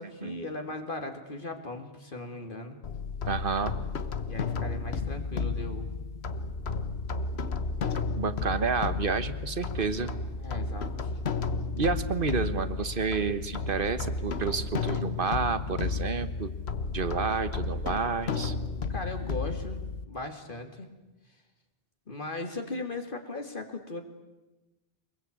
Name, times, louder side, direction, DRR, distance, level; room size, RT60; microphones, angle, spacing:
voice 1, 0.0-2.8 4.3-5.9 10.4-11.1 18.9-19.8 20.1-20.9 22.1-24.0, left 2 dB, 55° left, 5 dB, 2.6 m, -38 dB
sound 1, 2.8-20.0, left 4 dB, 85° left, 1.4 m, -33 dB
voice 2, 3.2-3.8 8.2-10.1 11.8-16.5 16.9-18.5, right 5 dB, 60° right, 13 dB, 1.5 m, -30 dB
24.0 x 21.5 x 8.6 m, 1.1 s
omnidirectional pair, 1.0 m